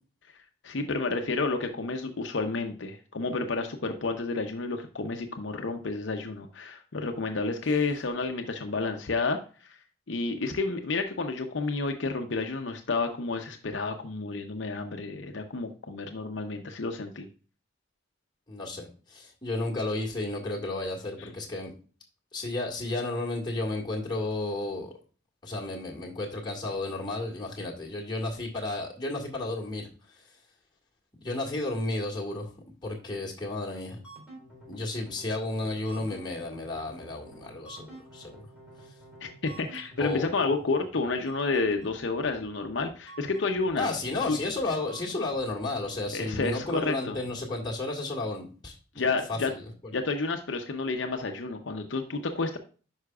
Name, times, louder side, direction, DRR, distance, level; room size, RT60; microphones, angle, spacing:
voice 1, 0.6-9.8 10.1-17.3 39.2-43.9 44.3-44.4 46.1-47.2 49.0-49.5 49.9-52.6, left 3 dB, 70° left, 5 dB, 0.7 m, -30 dB
voice 2, 18.5-21.7 22.3-24.9 25.4-29.9 31.2-32.5 32.8-34.0 34.7-38.5 40.0-40.3 43.8-49.6, left 2 dB, 25° left, -3 dB, 1.8 m, -33 dB
sound 1, 33.9-47.7, right 2 dB, 5° right, 3.6 m, -50 dB
9.6 x 5.6 x 2.4 m, 0.38 s
head